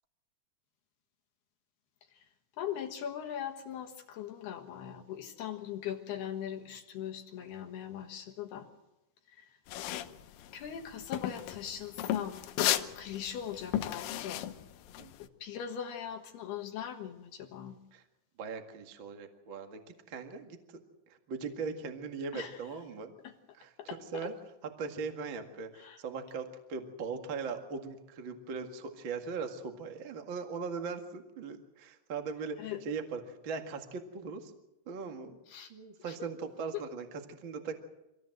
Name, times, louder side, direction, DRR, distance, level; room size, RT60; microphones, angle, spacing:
voice 1, 2.6-8.7 9.3-9.5 10.5-12.4 12.7-14.5 15.4-17.8 22.3-22.6 23.2-23.3 23.9-24.3 25.8-26.0 32.6-32.8 35.5-35.7 36.1-36.2, left 9 dB, 65° left, 3 dB, 3.0 m, -40 dB
sound 1, 9.7-15.2, left 12 dB, 80° left, 3.4 m, -34 dB
voice 2, 18.4-20.8 21.1-23.1 23.5-23.7 24.1-24.3 24.6-34.5 34.8-35.4 35.7-37.7, right 5 dB, 85° right, 5 dB, 1.0 m, -39 dB
25.5 x 17.5 x 7.8 m, 0.96 s
omnidirectional pair, 5.7 m